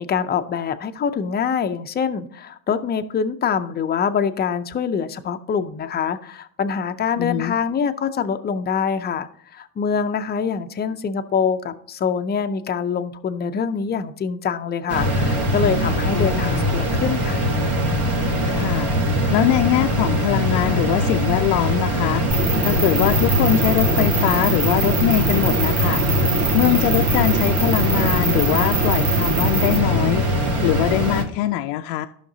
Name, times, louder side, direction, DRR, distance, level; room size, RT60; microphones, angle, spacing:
voice 1, 0.0-17.4, left 6 dB, 25° left, 9 dB, 0.5 m, -24 dB
voice 2, 7.2-7.6 16.1-16.6 18.5-26.0 26.5-30.2 30.6-32.1, left 14 dB, 80° left, 6 dB, 0.6 m, -22 dB
sound 1, 14.9-31.2, equal, 60° right, 2.1 m, -21 dB
sound 2, 22.3-29.8, right 4 dB, 40° right, 1.7 m, -24 dB
14.0 x 5.8 x 2.7 m, 0.63 s
supercardioid pair, 105°, 44 cm